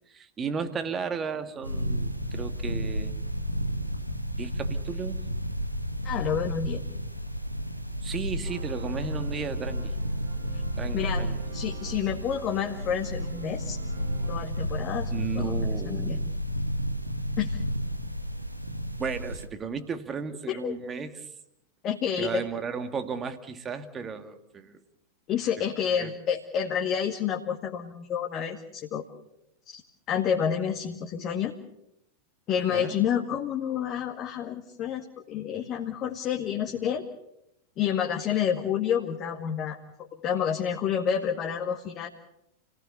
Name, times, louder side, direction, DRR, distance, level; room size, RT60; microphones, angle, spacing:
voice 1, 0.1-3.1 4.4-5.2 8.0-10.0 10.8-11.4 15.1-16.3 19.0-21.3 22.2-24.8 25.8-26.1 32.7-33.0, right 6 dB, 20° right, 8 dB, 2.1 m, -34 dB
sound 1, 1.6-19.5, equal, 90° right, 1.6 m, -32 dB
voice 2, 6.0-6.9 10.5-10.6 10.9-11.3 11.5-13.8 14.3-15.6 15.8-16.2 17.4-17.6 20.5-20.7 21.8-22.5 25.3-29.0 29.7-29.8 30.1-31.5 32.5-37.1 37.8-39.8 40.1-42.1, left 8 dB, 35° left, 2 dB, 2.0 m, -29 dB
sound 2, 8.4-14.5, right 5 dB, 60° right, 3.3 m, -46 dB
29.0 x 19.0 x 6.9 m, 0.82 s
figure-of-eight pair, 90°, 0 cm